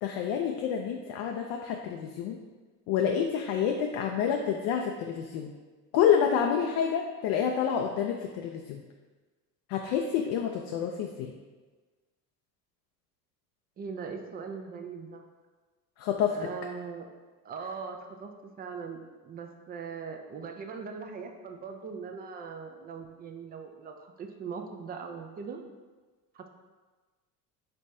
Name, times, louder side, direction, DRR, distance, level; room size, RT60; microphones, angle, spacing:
voice 1, 0.0-2.4 2.9-5.5 5.9-8.8 9.7-11.3 16.0-16.4, left 8 dB, 50° left, 3 dB, 0.5 m, -28 dB
voice 2, 13.8-15.2 16.3-17.1 17.4-18.3 18.6-25.6 26.3-26.5, right 5 dB, 20° right, 5 dB, 0.3 m, -40 dB
5.4 x 3.1 x 2.6 m, 1.3 s
hypercardioid pair, 70°, 49 cm